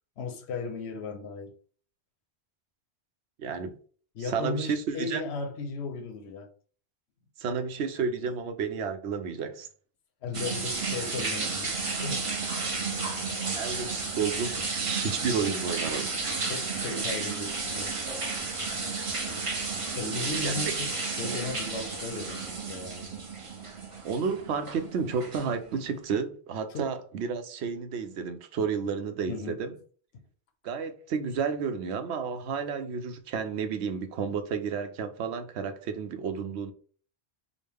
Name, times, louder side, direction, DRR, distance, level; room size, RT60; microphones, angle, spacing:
voice 1, 0.2-1.6 4.1-6.5 10.2-12.3 16.4-18.1 19.9-23.1 26.7-26.9 29.3-29.6, left 3 dB, 90° left, 1.0 m, -36 dB
voice 2, 3.4-3.8 4.3-5.2 7.4-9.7 13.6-16.1 20.4-20.7 24.0-29.7 30.6-36.7, right 6 dB, 90° right, 0.9 m, -31 dB
sound 1, 10.3-25.9, right 4 dB, 35° right, 0.7 m, -32 dB
5.0 x 2.1 x 3.4 m
omnidirectional pair, 1.1 m